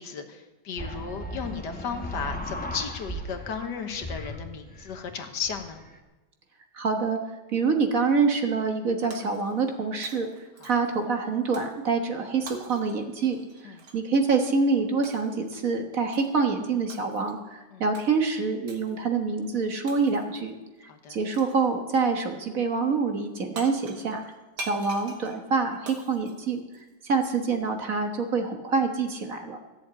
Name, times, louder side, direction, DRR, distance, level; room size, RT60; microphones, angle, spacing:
voice 1, 0.0-5.8 10.6-10.7 13.7-13.8 17.7-17.8 20.9-21.2, left 6 dB, 75° left, 6 dB, 1.8 m, -35 dB
sound 1, 0.8-3.7 3.9-6.0, equal, 5° left, 0.9 m, -37 dB
voice 2, 6.7-7.2 7.5-10.3 10.6-20.5 21.1-24.2 24.6-26.6 27.0-29.6, right 4 dB, 50° right, 4 dB, 1.7 m, -26 dB
Shatter, 9.1-9.8 10.0-11.0 11.5-11.8 12.5-14.0 15.0-15.4 16.1-16.5 16.9-17.4 17.9-18.1 18.7-19.0 19.9-20.4 21.3-21.7 23.3-23.4 23.6-27.1, right 2 dB, 70° right, 2.0 m, -44 dB
14.0 x 7.3 x 8.8 m, 1.1 s
omnidirectional pair, 1.9 m